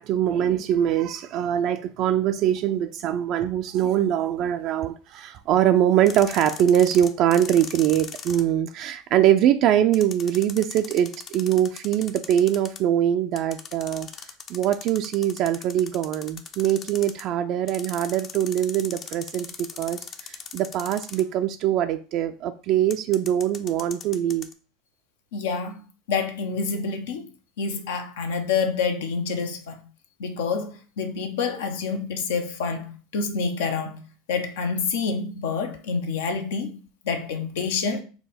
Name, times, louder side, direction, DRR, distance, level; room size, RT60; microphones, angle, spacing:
voice 1, 0.0-14.1 14.5-24.5, right 10 dB, 55° right, 0.3 m, -23 dB
sound 1, 6.1-8.4 9.9-12.8 13.4-17.2 17.7-21.4 22.9-24.5, left 6 dB, 40° left, 0.6 m, -39 dB
voice 2, 25.3-25.8 26.1-27.3 27.6-29.8 30.2-36.8 37.0-38.0, left 5 dB, 80° left, 0.7 m, -27 dB
5.5 x 2.2 x 4.1 m
hypercardioid pair, 95°, 0 cm